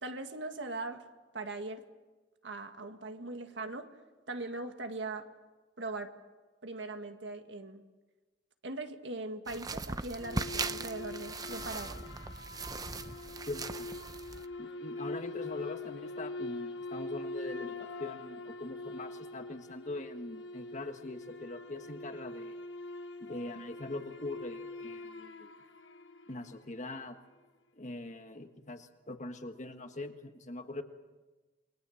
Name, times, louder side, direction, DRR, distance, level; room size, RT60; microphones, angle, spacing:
voice 1, 0.0-1.0 1.3-1.8 2.4-3.9 4.3-5.3 5.8-6.1 6.6-7.8 8.6-12.0, right 2 dB, 75° right, 6 dB, 1.8 m, -40 dB
sound 1, 9.5-14.5, right 3 dB, 20° right, 0.7 m, -39 dB
sound 2, 10.1-26.7, left 2 dB, 80° left, 1.4 m, -43 dB
voice 2, 13.5-13.9 14.6-22.6 23.2-25.5 26.3-27.2 27.8-30.8, left 2 dB, 40° left, 6 dB, 1.6 m, -42 dB
28.5 x 21.5 x 7.2 m, 1.2 s
head